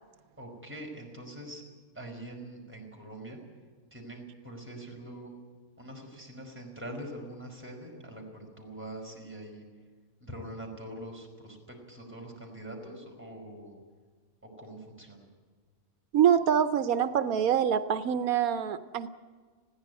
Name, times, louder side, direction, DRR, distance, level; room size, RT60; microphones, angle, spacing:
voice 1, 0.4-1.6 1.9-3.4 3.9-5.3 5.8-9.6 10.2-13.7 14.6-15.3, right 1 dB, 10° right, 0 dB, 5.0 m, -43 dB
voice 2, 16.1-19.1, right 9 dB, 90° right, 11 dB, 1.3 m, -25 dB
20.5 x 15.5 x 9.5 m, 1.5 s
omnidirectional pair, 1.5 m